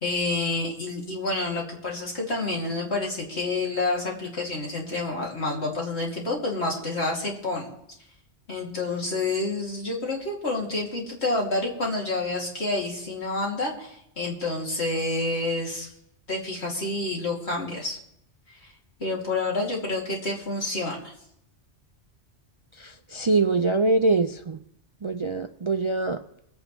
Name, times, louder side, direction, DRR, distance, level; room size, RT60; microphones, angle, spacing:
voice 1, 0.0-7.7 8.5-15.9 16.3-18.0 18.6-18.7 19.0-21.1, left 2 dB, 70° left, -2 dB, 2.9 m, -28 dB
voice 2, 22.8-24.6 25.0-26.2, right 3 dB, 45° right, 6 dB, 0.4 m, -24 dB
24.0 x 8.9 x 3.1 m, 0.77 s
omnidirectional pair, 1.2 m